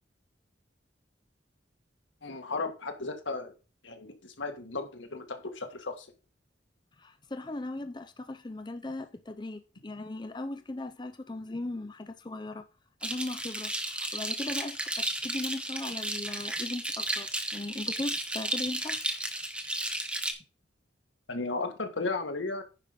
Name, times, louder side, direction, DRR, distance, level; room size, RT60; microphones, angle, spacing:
voice 1, 2.2-3.5 3.8-6.1 21.3-22.6, left 3 dB, 90° left, 1.8 m, -35 dB
voice 2, 7.0-12.7 13.0-19.0, left 2 dB, 25° left, 0.6 m, -38 dB
sound 1, 13.0-20.3, right 1 dB, 5° right, 1.1 m, -33 dB
10.0 x 5.6 x 5.2 m
head